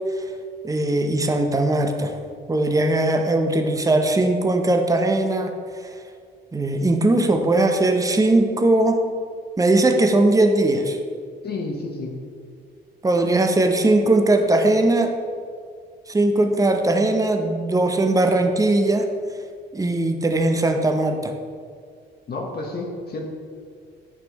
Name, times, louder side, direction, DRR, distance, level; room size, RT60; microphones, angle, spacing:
voice 1, 0.6-2.2 2.5-5.5 6.5-9.0 9.6-11.0 13.0-15.2 16.1-19.1 19.7-21.3, right 2 dB, 15° right, 5 dB, 0.8 m, -19 dB
voice 2, 11.4-12.2 22.3-23.2, left 3 dB, 55° left, 0 dB, 1.1 m, -30 dB
9.8 x 4.4 x 4.1 m, 2.1 s
cardioid pair, 90°, 20 cm